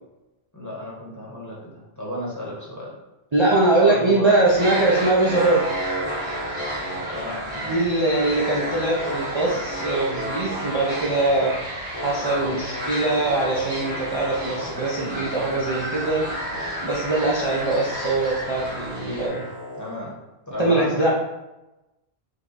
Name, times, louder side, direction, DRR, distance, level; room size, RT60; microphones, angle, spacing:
voice 1, 0.5-2.9 3.8-4.4 7.1-7.8 19.8-20.1 20.5-21.1, left 1 dB, 20° left, -5 dB, 0.9 m, -33 dB
voice 2, 3.3-5.6 7.6-16.5 16.8-19.5 20.6-21.1, right 2 dB, 35° right, -5 dB, 0.5 m, -22 dB
sound 1, 4.4-19.3, right 1 dB, 75° right, 1.9 m, -33 dB
sound 2, 4.6-7.9 8.1-11.4 11.9-19.9, equal, 70° left, 1.8 m, -33 dB
5.2 x 2.2 x 4.0 m, 1.0 s
omnidirectional pair, 1.1 m